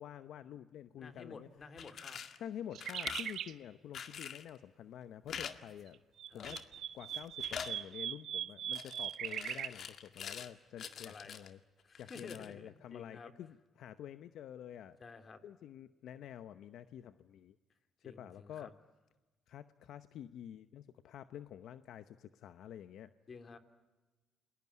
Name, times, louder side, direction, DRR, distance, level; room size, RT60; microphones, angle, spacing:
voice 1, 0.0-1.5 2.4-6.0 6.3-6.6 6.9-11.6 12.0-15.0 15.4-17.6 18.0-18.7 19.5-23.1, left 10 dB, 75° left, 12 dB, 0.8 m, -48 dB
voice 2, 1.0-2.2 6.3-6.5 10.9-11.4 11.8-13.3 15.0-15.4 18.0-18.7 23.3-23.6, left 4 dB, 40° left, 9 dB, 3.0 m, -52 dB
sound 1, 1.6-2.4 2.8-3.4 3.9-4.5 5.3-5.5 5.8-5.9 6.4-6.8 7.1-7.7 8.7-10.5 10.8-11.5 11.9-12.5, left 7 dB, 60° left, 2.0 m, -45 dB
sound 2, 2.7-3.5 5.9-9.7, right 10 dB, 70° right, 1.2 m, -40 dB
29.0 x 21.0 x 9.6 m, 1.2 s
cardioid pair, 90°, 0 cm